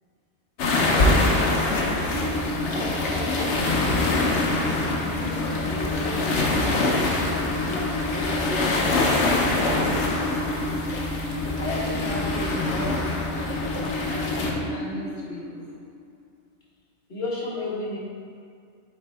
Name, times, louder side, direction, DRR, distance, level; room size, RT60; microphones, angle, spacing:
sound 1, 0.6-14.5, left 2 dB, 80° left, 1.1 m, -24 dB
voice 1, 0.7-1.4 1.7-2.3 2.6-4.1 5.0-6.9 7.2-10.3 11.6-15.6 17.1-18.0, left 2 dB, 60° left, -6 dB, 1.6 m, -35 dB
sound 2, 2.1-16.2, left 1 dB, 55° right, 0.8 m, -33 dB
7.1 x 4.4 x 3.4 m, 2.2 s
omnidirectional pair, 1.2 m